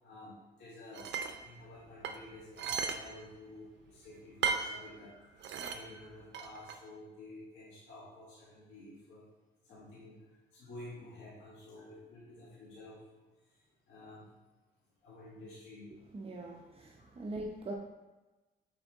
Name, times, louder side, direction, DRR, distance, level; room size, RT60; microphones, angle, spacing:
voice 1, 0.0-9.3 9.7-10.2 10.5-13.0 13.9-14.3 15.0-15.9, left 2 dB, 90° left, -8 dB, 1.9 m, -51 dB
sound 1, 0.9-1.4 2.0-3.0 3.3-3.4 4.4-4.7 5.4-5.8 6.3-6.7, right 6 dB, 65° right, 0.6 m, -35 dB
voice 2, 16.1-17.7, right 2 dB, 30° right, -1 dB, 0.8 m, -42 dB
6.8 x 4.5 x 3.6 m, 1.1 s
cardioid pair, 90°, 20 cm